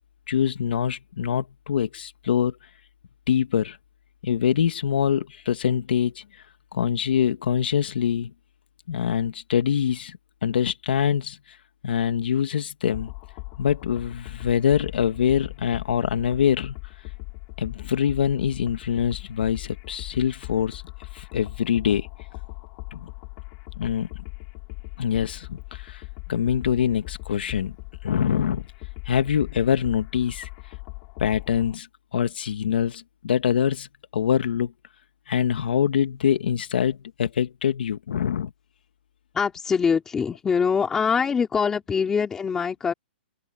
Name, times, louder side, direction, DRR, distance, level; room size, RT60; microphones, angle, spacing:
voice 1, 0.3-2.6 3.3-3.8 4.2-6.4 6.7-8.3 8.9-11.6 11.8-13.1 13.6-16.7 17.6-20.8 21.1-22.1 22.9-23.1 23.8-24.1 25.0-26.0 26.3-27.7 28.0-28.7 29.0-30.5 31.2-34.7 35.3-38.5, left 8 dB, 70° left, 1.8 m, -24 dB
sound 1, 12.9-31.8, left 28 dB, 30° left, 2.8 m, -39 dB
voice 2, 39.3-42.9, left 6 dB, 10° left, 3.9 m, -23 dB
open air
hypercardioid pair, 170°, 6 cm